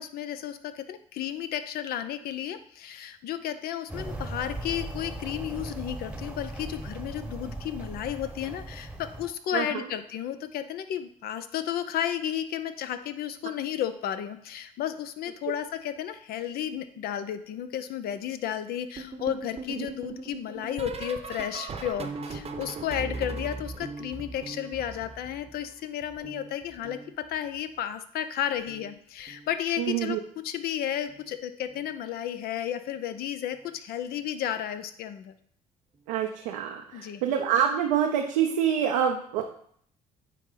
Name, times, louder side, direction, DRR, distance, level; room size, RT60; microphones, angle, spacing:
voice 1, 0.0-30.2 30.4-35.3 36.9-37.2, left 10 dB, 60° left, 11 dB, 0.6 m, -33 dB
sound 1, 3.9-9.3, right 2 dB, 5° right, 1.0 m, -38 dB
voice 2, 9.5-9.8 19.8-19.9 29.8-30.2 36.1-39.4, right 9 dB, 80° right, 2 dB, 0.6 m, -26 dB
sound 2, 19.0-25.7 26.0-27.6 28.6-28.9 29.2-29.5 31.1-31.4 31.7-31.9 33.5-33.6, right 3 dB, 35° right, 0.8 m, -39 dB
9.1 x 3.0 x 3.8 m, 0.63 s
hypercardioid pair, 55°, 18 cm